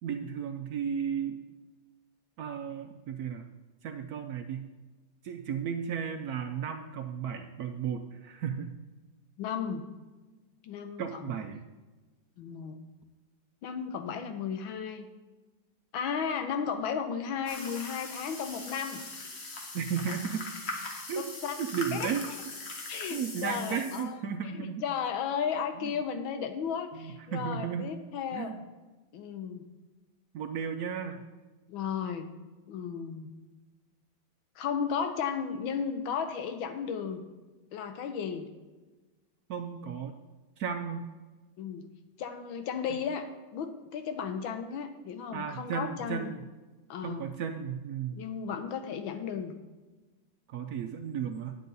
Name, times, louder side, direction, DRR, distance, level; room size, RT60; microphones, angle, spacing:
voice 1, 0.0-1.4 2.4-3.5 3.8-4.7 5.2-8.7 11.0-11.6 19.7-20.4 21.1-21.2 21.6-22.5 23.1-24.8 26.9-27.9 28.3-28.6 30.3-31.2 39.5-40.1 40.6-41.0 45.3-46.4 47.0-48.2 50.5-51.6, right 7 dB, 70° right, 5 dB, 0.9 m, -34 dB
voice 2, 9.4-9.8 10.6-11.4 12.4-12.8 13.6-15.1 15.9-19.0 21.2-21.6 21.9-22.1 22.9-24.2 24.5-28.6 29.1-29.6 31.7-32.3 32.7-33.3 34.6-37.2 37.7-38.5 41.6-41.9 42.2-46.3 46.9-47.2 48.2-49.5, left 7 dB, 90° left, 7 dB, 1.6 m, -34 dB
sound 1, 17.5-24.0, left 2 dB, 40° left, 1.2 m, -41 dB
9.9 x 8.3 x 4.0 m, 1.2 s
omnidirectional pair, 2.1 m